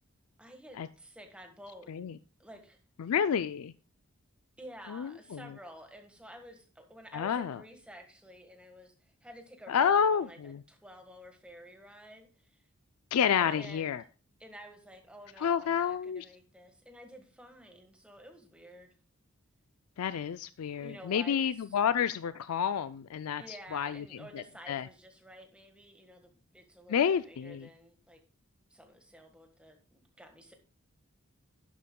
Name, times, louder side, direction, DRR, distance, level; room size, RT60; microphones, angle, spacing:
voice 1, 0.4-2.0 2.4-2.8 4.6-12.6 13.4-14.0 14.4-18.9 20.8-21.6 23.4-28.2 28.7-30.5, equal, 5° right, 1.5 m, -51 dB
voice 2, 3.0-3.7 4.9-5.4 7.1-7.6 9.7-10.6 13.1-14.0 15.4-16.2 20.0-24.0 24.3-24.9 26.9-27.7, left 7 dB, 85° left, 0.4 m, -29 dB
11.0 x 11.0 x 2.3 m
head